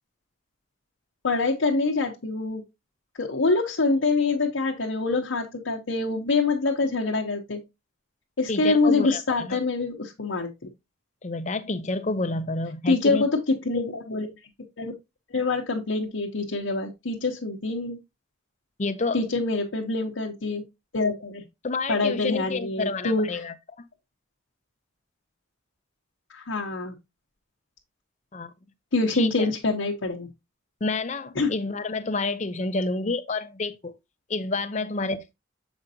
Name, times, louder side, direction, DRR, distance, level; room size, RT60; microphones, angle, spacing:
voice 1, 1.2-2.6 3.2-7.6 8.4-10.7 12.9-14.3 14.8-14.9 15.3-18.0 19.1-20.6 20.9-21.4 21.9-23.3 26.3-26.9 28.9-30.3 31.4-31.5, left 3 dB, 80° left, 0.9 m, -25 dB
voice 2, 8.5-9.6 11.2-13.3 18.8-19.2 21.6-23.9 28.3-28.5 29.1-29.5 30.8-33.9 34.3-35.3, left 3 dB, 35° left, 0.6 m, -29 dB
7.0 x 5.1 x 2.7 m
head